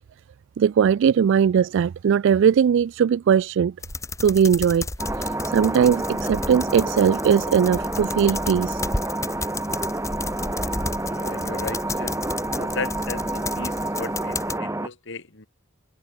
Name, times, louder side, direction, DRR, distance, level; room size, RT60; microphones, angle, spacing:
voice 1, 0.6-3.7 4.2-4.9 5.2-8.8, right 7 dB, 60° right, 0.3 m, -19 dB
sound 1, 3.8-14.6, left 3 dB, 15° left, 1.2 m, -33 dB
sound 2, 5.0-14.9, right 1 dB, 15° right, 2.1 m, -29 dB
voice 2, 11.0-12.2 12.5-15.5, left 3 dB, 60° left, 3.1 m, -35 dB
head